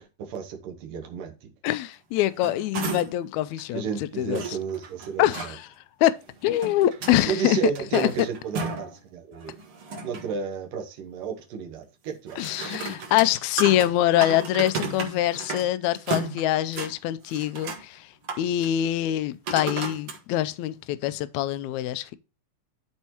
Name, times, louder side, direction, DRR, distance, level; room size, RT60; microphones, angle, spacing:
voice 1, 0.0-1.5 3.7-5.5 7.3-9.6 10.0-12.8, right 6 dB, 85° right, 2.7 m, -32 dB
voice 2, 1.6-4.4 5.2-5.7 6.0-6.1 6.4-7.6 7.9-8.1 12.4-18.1 18.4-22.2, left 13 dB, 80° left, 1.7 m, -24 dB
sound 1, 2.1-3.3 3.6-3.7 4.3-5.5 6.3-7.2 7.6-9.0 9.3-10.3 12.3-15.7 15.9-16.9 17.3-17.8 18.2-18.7 19.5-20.2 20.8-20.9, right 4 dB, 50° right, 2.1 m, -34 dB
13.0 x 4.5 x 2.9 m
omnidirectional pair, 3.8 m